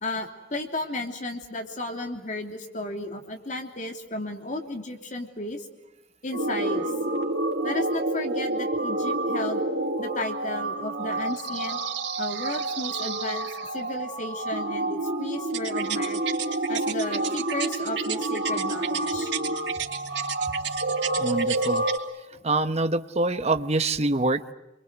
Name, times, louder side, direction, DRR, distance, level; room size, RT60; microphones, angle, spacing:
voice 1, 0.0-5.7 6.2-6.9 7.6-9.6 10.0-11.8 12.2-13.5 13.7-16.2 16.7-19.3, left 2 dB, 45° left, 4 dB, 3.1 m, -34 dB
sound 1, 6.3-22.0, right 2 dB, 75° right, 3.3 m, -28 dB
voice 2, 21.2-21.8 22.4-24.5, right 2 dB, 35° right, 9 dB, 1.1 m, -25 dB
29.0 x 23.5 x 8.1 m, 0.99 s
head